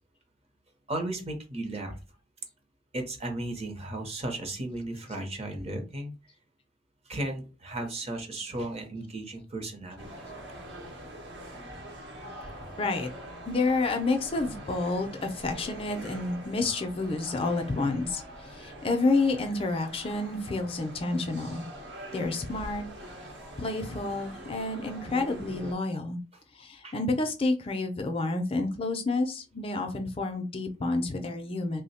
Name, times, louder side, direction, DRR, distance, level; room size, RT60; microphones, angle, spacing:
voice 1, 0.9-2.0 2.9-6.1 7.1-10.1 12.6-12.7 26.3-26.4 26.8-27.0, right 1 dB, 35° right, 4 dB, 0.7 m, -35 dB
sound 1, 10.0-25.7, equal, 65° right, 0.9 m, -44 dB
voice 2, 12.8-13.1 13.5-18.2 18.6-21.7 22.1-22.8 23.6-26.2 26.6-31.8, left 3 dB, 30° left, 5 dB, 0.4 m, -29 dB
3.1 x 2.1 x 4.1 m, 0.31 s
head